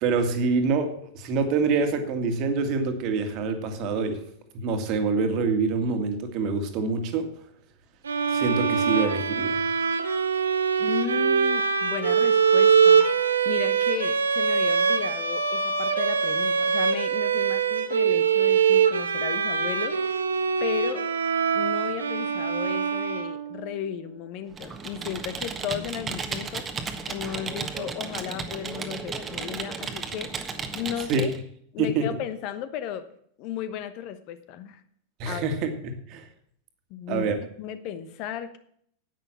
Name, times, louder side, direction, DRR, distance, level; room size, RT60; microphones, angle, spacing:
voice 1, 0.0-4.2 4.5-7.3 8.3-9.6 31.1-31.3 31.8-32.1 35.2-36.2 37.1-37.4, right 4 dB, 40° right, 7 dB, 1.9 m, -26 dB
sound 1, 8.0-23.7, right 6 dB, 70° right, 1.0 m, -23 dB
voice 2, 10.8-20.2 20.6-21.0 21.5-26.7 27.1-30.3 30.7-31.3 31.7-33.1 33.4-34.8 35.2-35.4 36.9-37.3 37.6-38.6, left 10 dB, 45° left, 11 dB, 1.0 m, -35 dB
Computer keyboard, 24.5-31.4, right 5 dB, 20° right, 1.4 m, -34 dB
10.5 x 9.0 x 5.9 m, 0.66 s
figure-of-eight pair, 90°, 0 cm